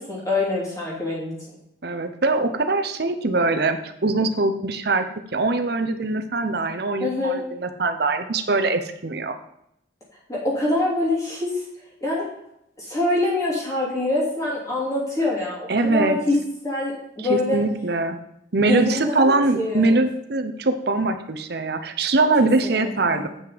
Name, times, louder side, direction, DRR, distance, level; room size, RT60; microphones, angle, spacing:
voice 1, 0.0-1.6 7.0-7.4 10.3-11.6 12.0-12.3 12.8-16.4 16.6-17.6 18.6-20.0 22.4-23.3, left 2 dB, 15° left, -5 dB, 3.0 m, -25 dB
voice 2, 1.8-5.1 5.3-9.4 15.7-16.2 17.2-18.2 18.5-23.3, right 3 dB, 55° right, 8 dB, 0.8 m, -22 dB
7.9 x 6.0 x 5.0 m, 0.79 s
head